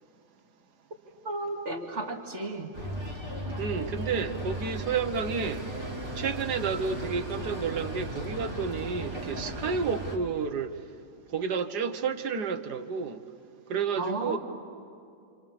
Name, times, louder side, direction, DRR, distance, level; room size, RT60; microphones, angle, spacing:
voice 1, 1.2-2.7 14.0-14.4, right 2 dB, 45° right, 2.7 m, -33 dB
sound 1, 2.7-10.2, right 1 dB, 15° right, 3.0 m, -36 dB
voice 2, 3.6-5.7 6.2-10.8 11.3-13.2 13.7-14.4, right 5 dB, 80° right, 1.8 m, -31 dB
29.5 x 28.0 x 7.2 m
omnidirectional pair, 1.7 m